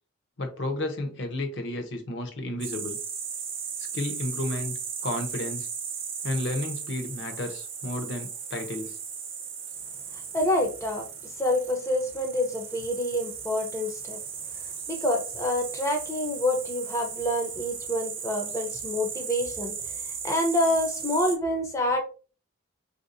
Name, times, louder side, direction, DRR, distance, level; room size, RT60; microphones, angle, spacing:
voice 1, 0.4-3.0 3.9-4.7 5.0-5.7 6.2-9.0, left 1 dB, 55° left, 0.8 m, -32 dB
sound 1, 2.6-21.4, right 6 dB, 55° right, 0.7 m, -36 dB
voice 2, 10.1-14.2 14.5-22.0, left 1 dB, 15° left, 0.5 m, -28 dB
3.6 x 2.7 x 2.6 m
head